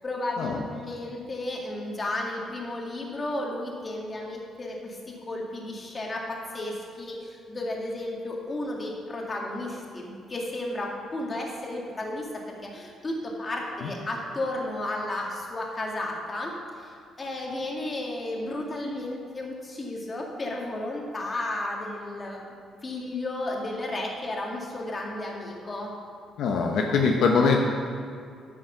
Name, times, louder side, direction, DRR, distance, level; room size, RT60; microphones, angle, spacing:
voice 1, 0.0-22.5 22.8-25.9, left 1 dB, 30° left, -1 dB, 2.0 m, -33 dB
voice 2, 26.4-27.6, left 4 dB, 75° left, 1 dB, 0.9 m, -22 dB
9.3 x 6.4 x 5.8 m, 2.3 s
cardioid pair, 90°, 0 cm